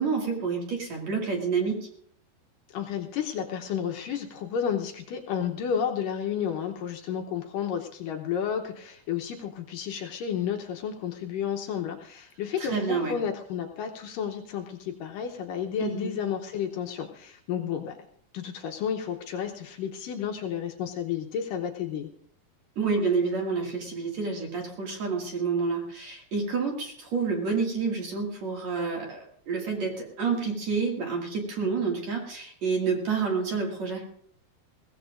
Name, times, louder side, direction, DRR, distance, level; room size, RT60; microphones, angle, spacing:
voice 1, 0.0-1.8 12.6-13.2 15.8-16.1 22.8-34.1, right 5 dB, 50° right, 0 dB, 3.1 m, -29 dB
voice 2, 2.7-17.9 18.3-22.1, left 8 dB, 75° left, 3 dB, 2.3 m, -31 dB
22.5 x 16.5 x 2.5 m, 0.63 s
omnidirectional pair, 4.4 m